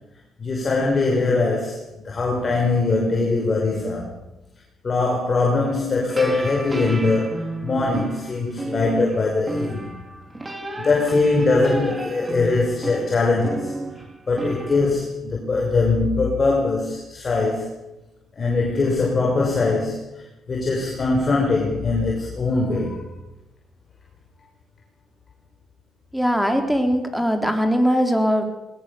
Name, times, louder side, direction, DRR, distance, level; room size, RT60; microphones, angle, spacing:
voice 1, 0.4-4.1 4.8-10.0 10.8-13.7 14.3-17.7 18.4-23.1, left 3 dB, 35° left, 0 dB, 5.6 m, -22 dB
sound 1, 6.1-14.8, right 2 dB, 20° right, 4.1 m, -32 dB
voice 2, 26.1-28.4, equal, ahead, 5 dB, 4.0 m, -20 dB
21.5 x 19.5 x 7.1 m, 0.95 s
cardioid pair, 90°, 0 cm